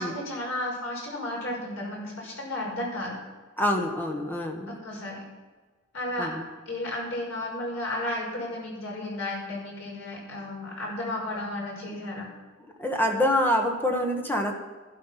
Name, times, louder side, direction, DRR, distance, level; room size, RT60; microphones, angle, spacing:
voice 1, 0.0-3.2 4.7-5.2 5.9-6.3 6.7-12.3, left 1 dB, 75° left, -2 dB, 5.4 m, -33 dB
voice 2, 3.6-4.8 6.2-6.4 12.8-14.5, left 1 dB, 10° left, 2 dB, 1.5 m, -26 dB
12.5 x 12.0 x 5.9 m, 1.4 s
head